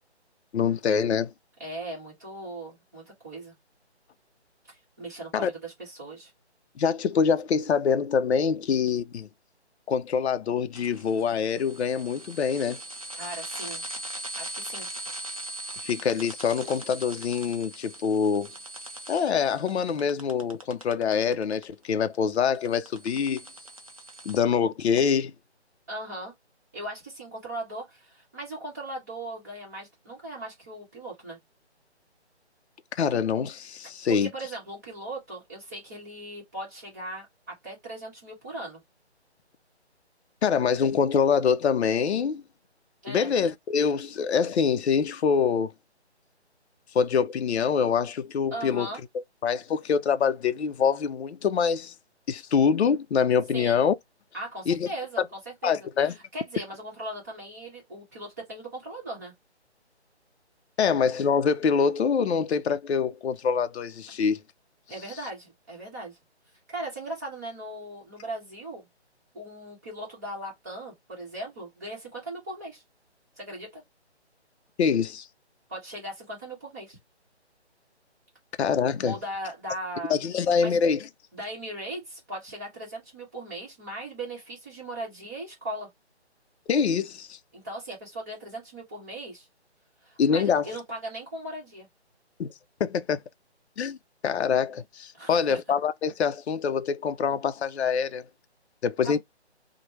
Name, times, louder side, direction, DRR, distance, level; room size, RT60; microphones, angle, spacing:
voice 1, 0.5-1.3 5.3-5.5 6.8-9.3 9.9-12.8 15.8-18.5 19.1-23.4 24.3-25.3 33.0-34.3 40.4-42.4 43.1-45.7 46.9-48.9 49.4-51.9 52.3-53.9 54.7-54.9 55.6-56.1 60.8-64.4 74.8-75.3 78.6-79.2 80.1-81.1 86.7-87.4 90.2-90.7 92.4-92.5 92.8-93.2 93.8-94.0 94.2-98.2 98.8-99.2, left 6 dB, 70° left, 0.5 m, -25 dB
voice 2, 1.6-3.5 4.7-6.3 13.2-13.8 14.4-14.9 25.9-26.3 26.7-31.4 34.1-38.8 43.0-43.3 48.5-49.0 53.5-53.8 54.3-59.3 64.9-66.2 66.7-68.9 69.3-72.8 73.4-73.8 75.7-77.0 79.0-80.8 81.3-85.9 87.5-89.5 90.0-91.9 95.1-95.6 99.0-99.2, right 1 dB, 15° right, 1.0 m, -38 dB
sound 1, 10.7-21.6 21.9-24.4, right 1 dB, 30° right, 0.5 m, -40 dB
3.0 x 2.1 x 3.0 m
hypercardioid pair, 170°, 34 cm